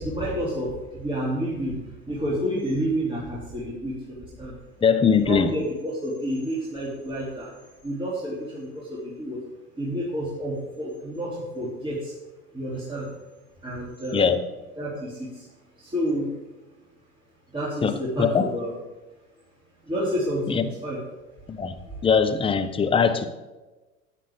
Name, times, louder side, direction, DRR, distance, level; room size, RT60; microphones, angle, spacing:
voice 1, 0.0-4.6 5.0-7.5 7.8-9.4 9.8-12.1 12.5-13.1 13.6-14.3 14.8-15.5 15.8-16.3 17.5-18.7 19.8-21.0 21.9-22.1, equal, 10° right, -6 dB, 3.1 m, -30 dB
voice 2, 4.8-5.5 14.1-14.4 17.8-18.5 20.5-20.6 21.5-21.7 22.0-23.3, left 6 dB, 15° left, 8 dB, 0.8 m, -21 dB
15.0 x 9.3 x 3.7 m, 1.1 s
figure-of-eight pair, 80°, 42 cm